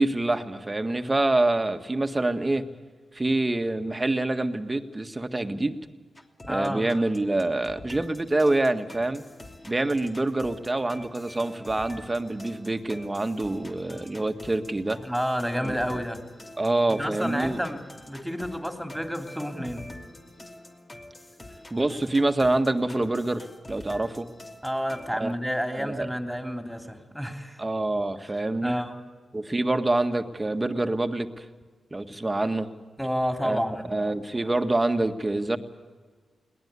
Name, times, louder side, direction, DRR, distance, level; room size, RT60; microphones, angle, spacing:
voice 1, 0.0-2.6 3.1-5.8 6.5-9.2 9.6-15.0 15.6-15.8 16.6-17.6 21.7-24.3 25.2-25.3 25.8-26.1 27.6-28.8 29.3-31.4 31.9-32.7 33.4-33.6 33.9-35.6, right 2 dB, 25° right, 8 dB, 1.7 m, -26 dB
sound 1, 6.2-25.1, left 1 dB, 30° left, 2.9 m, -46 dB
voice 2, 6.5-6.8 15.0-16.2 16.9-17.8 18.1-19.9 24.6-27.6 28.6-29.0 33.0-33.9, equal, ahead, 4 dB, 3.3 m, -30 dB
22.0 x 18.5 x 8.4 m, 1.5 s
supercardioid pair, 45°, 0 cm